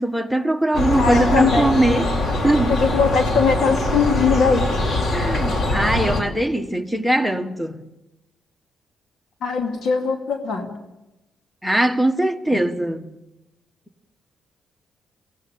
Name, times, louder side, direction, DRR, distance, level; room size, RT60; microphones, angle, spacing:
voice 1, 0.0-2.1 2.4-2.7 5.1-7.8 11.6-13.1, right 1 dB, ahead, 1.6 m, -21 dB
sound 1, 0.7-6.2, left 1 dB, 60° left, 3.0 m, -22 dB
voice 2, 1.0-1.7 2.7-4.7 9.4-10.7, left 5 dB, 75° left, 2.5 m, -20 dB
22.5 x 16.5 x 8.8 m
cardioid pair, 80°, 0 cm